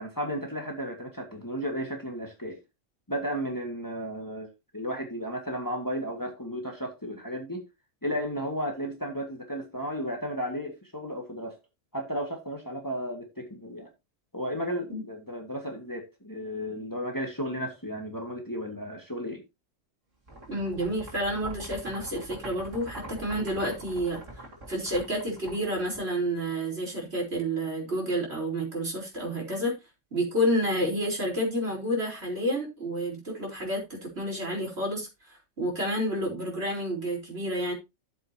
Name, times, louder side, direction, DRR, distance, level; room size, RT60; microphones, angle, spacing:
voice 1, 0.0-2.6 3.1-4.5 4.7-7.6 8.0-11.6 11.9-13.9 14.3-19.4, equal, 15° left, 1.9 m, -34 dB
sound 1, 20.3-26.4, right 1 dB, 80° right, 3.9 m, -44 dB
voice 2, 20.5-24.2 24.7-29.7 30.1-37.7, equal, 55° right, 4.5 m, -30 dB
13.0 x 7.6 x 2.9 m
omnidirectional pair, 1.3 m